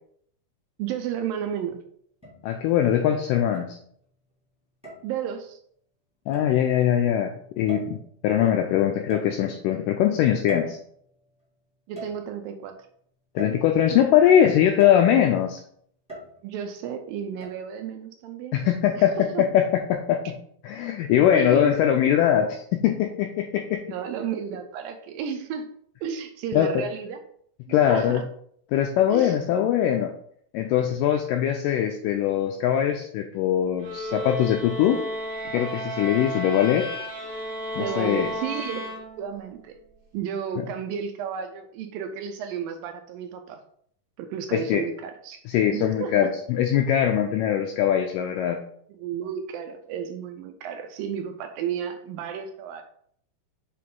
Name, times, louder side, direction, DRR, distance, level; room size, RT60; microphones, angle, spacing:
voice 1, 0.8-1.8 5.0-5.6 11.9-12.7 16.4-18.6 19.0-19.4 21.3-21.8 23.9-25.7 26.0-27.2 27.7-28.2 29.1-29.4 37.8-39.7 40.1-43.6 44.2-45.4 45.7-46.3 48.9-52.8, right 8 dB, 80° right, 6 dB, 2.2 m, -32 dB
sound 1, 2.2-2.8 3.5-4.2 4.8-5.2 6.3-6.6 7.7-8.2 9.1-9.8 10.5-11.3 11.9-12.6 13.4-14.1 14.8-15.3 16.1-16.7 17.4-17.5, right 1 dB, 5° right, 1.1 m, -41 dB
voice 2, 2.4-3.8 6.3-10.8 13.4-15.6 18.5-20.4 20.6-23.8 26.5-26.8 27.7-28.2 28.7-30.1 30.5-35.0 35.5-36.9 37.8-38.3 44.5-44.8 45.5-48.6, left 10 dB, 85° left, 4 dB, 1.9 m, -22 dB
sound 2, 33.8-39.5, equal, 45° right, 1.1 m, -33 dB
6.6 x 3.8 x 3.8 m, 0.64 s
omnidirectional pair, 4.3 m